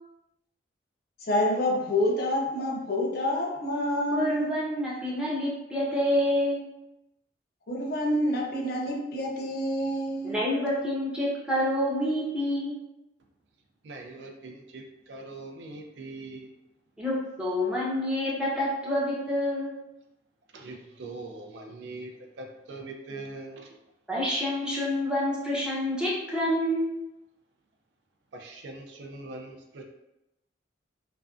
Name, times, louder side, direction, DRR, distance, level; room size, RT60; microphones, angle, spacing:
voice 1, 1.2-4.3 7.7-10.4, left 1 dB, 55° left, -1 dB, 0.5 m, -27 dB
voice 2, 4.1-6.7 10.2-12.7 17.0-19.7 24.1-26.9, left 1 dB, 5° right, -6 dB, 0.6 m, -27 dB
voice 3, 13.8-16.5 20.5-22.1 22.4-23.7 28.3-29.8, right 2 dB, 75° right, 2 dB, 0.4 m, -42 dB
2.4 x 2.1 x 2.3 m, 0.92 s
head